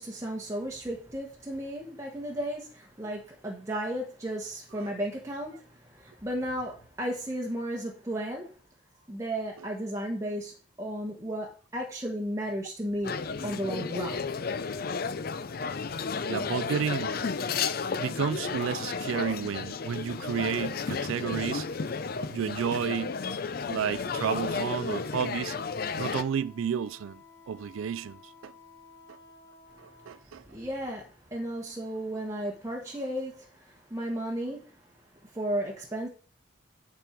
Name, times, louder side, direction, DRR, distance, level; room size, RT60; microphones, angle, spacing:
voice 1, 0.0-8.5 9.1-14.3 29.7-29.9 30.3-34.9 35.2-36.1, right 1 dB, 15° right, 1.3 m, -34 dB
sound 1, 13.0-26.2, left 5 dB, 50° left, 0.5 m, -33 dB
voice 2, 16.2-17.1 18.0-21.7 22.3-23.2 23.7-25.6 26.0-28.5 29.1-29.2 29.8-30.4, right 7 dB, 85° right, 0.3 m, -32 dB
Wind instrument woodwind instrument, 26.1-30.3, left 4 dB, 15° left, 1.3 m, -54 dB
10.0 x 5.2 x 4.5 m
head